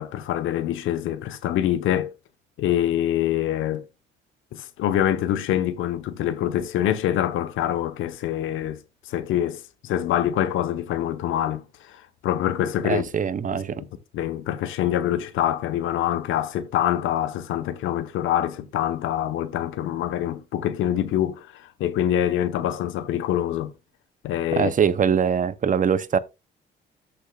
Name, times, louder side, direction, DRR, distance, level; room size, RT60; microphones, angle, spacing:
voice 1, 0.0-2.1 2.6-3.8 4.5-8.8 9.0-13.0 13.5-13.9 14.1-23.7 24.2-24.7, left 11 dB, 85° left, 1.1 m, -25 dB
voice 2, 12.8-13.8 24.5-26.2, right 7 dB, 40° right, 0.8 m, -22 dB
13.5 x 6.7 x 2.4 m
cardioid pair, 90°, 20 cm